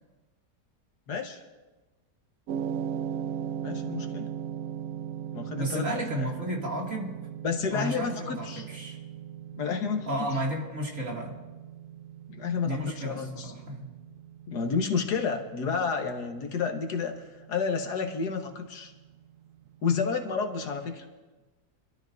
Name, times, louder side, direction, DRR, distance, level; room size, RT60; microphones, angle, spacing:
voice 1, 1.1-1.4 3.6-4.3 5.3-6.3 7.4-8.7 9.5-10.1 12.3-13.5 14.5-17.2 17.5-18.9 19.8-21.1, left 5 dB, 75° left, 4 dB, 1.8 m, -30 dB
sound 1, 2.5-20.7, right 9 dB, 70° right, 0.8 m, -39 dB
voice 2, 5.6-7.1 7.7-9.0 10.1-11.4 12.6-13.9, right 1 dB, 50° right, -2 dB, 2.7 m, -33 dB
26.0 x 13.0 x 2.6 m, 1.2 s
omnidirectional pair, 1.8 m